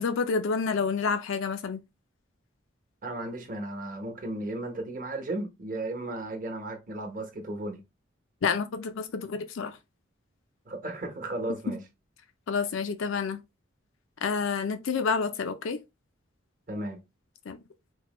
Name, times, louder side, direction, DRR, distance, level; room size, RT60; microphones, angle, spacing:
voice 1, 0.0-1.8 8.4-9.8 12.5-13.4 14.2-15.8 17.5-17.6, left 5 dB, 80° left, 0.4 m, -29 dB
voice 2, 3.0-7.8 10.7-11.8 16.7-17.0, right 1 dB, 40° right, 1.0 m, -35 dB
4.5 x 2.1 x 3.0 m
head